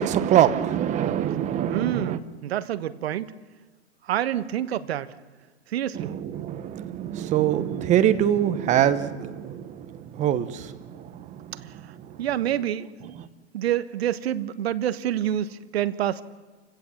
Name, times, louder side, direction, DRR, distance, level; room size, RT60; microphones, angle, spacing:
voice 1, 0.0-2.2 6.0-9.6 10.2-10.7, right 10 dB, 20° right, 12 dB, 1.0 m, -23 dB
voice 2, 1.7-3.3 4.1-5.1 5.7-6.2 12.2-13.1 13.5-16.2, right 11 dB, 60° right, 12 dB, 1.3 m, -27 dB
29.0 x 16.5 x 7.2 m, 1.3 s
hypercardioid pair, 135°, 35 cm